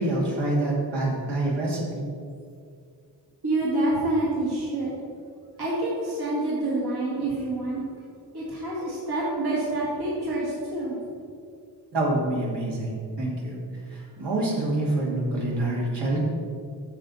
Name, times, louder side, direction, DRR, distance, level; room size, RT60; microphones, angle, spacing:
voice 1, 0.0-2.0 11.9-13.6 13.9-16.2, right 2 dB, 75° right, -5 dB, 2.4 m, -26 dB
voice 2, 3.4-4.9 5.6-7.8 8.3-11.0, right 2 dB, 60° right, -6 dB, 2.0 m, -27 dB
9.3 x 6.9 x 4.1 m, 2.3 s
wide cardioid pair, 120°, 42 cm